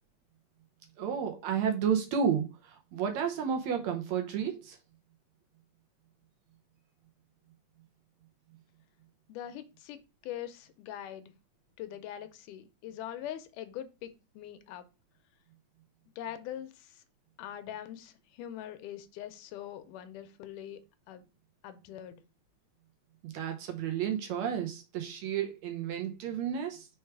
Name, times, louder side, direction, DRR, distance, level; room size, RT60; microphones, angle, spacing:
voice 1, 1.0-4.8 23.2-26.9, right 7 dB, 70° right, 1.9 m, -32 dB
voice 2, 9.3-11.3 11.8-14.9 16.2-17.0 17.4-20.8 21.1-21.3 21.6-22.2, left 11 dB, 85° left, 2.2 m, -43 dB
4.7 x 4.7 x 4.6 m
omnidirectional pair, 3.7 m